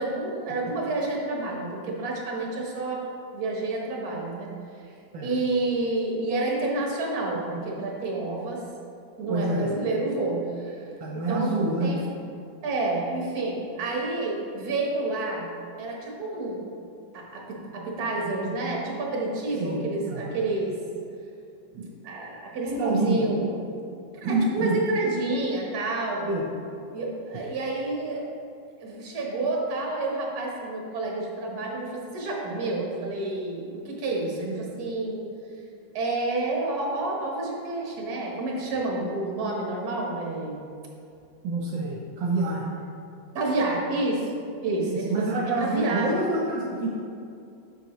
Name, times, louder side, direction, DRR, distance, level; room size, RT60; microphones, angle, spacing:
voice 1, 0.0-3.0 3.3-4.5 4.8-4.9 5.2-8.6 9.2-10.9 11.1-12.0 12.6-15.5 15.8-16.6 17.1-20.8 22.0-23.5 24.1-26.3 26.9-28.2 28.8-35.2 35.9-40.7 43.3-46.1, right 2 dB, 55° right, -2 dB, 1.6 m, -29 dB
voice 2, 9.3-9.7 11.0-11.9 19.6-20.3 21.7-21.9 22.6-23.3 24.2-24.7 26.3-26.5 34.3-34.7 41.4-42.7 44.9-46.9, right 2 dB, 75° right, -3 dB, 1.5 m, -27 dB
7.6 x 6.4 x 3.1 m, 2.5 s
omnidirectional pair, 2.1 m